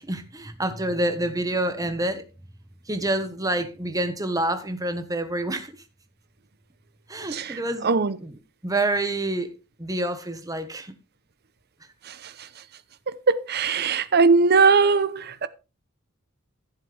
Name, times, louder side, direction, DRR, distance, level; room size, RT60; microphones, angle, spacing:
voice 1, 0.0-2.2 2.9-5.8 7.1-9.5 9.8-10.9 13.8-13.9, right 1 dB, 15° right, 1.3 m, -28 dB
voice 2, 7.8-8.1 13.3-15.5, right 4 dB, 50° right, 0.7 m, -19 dB
14.5 x 7.5 x 3.4 m
head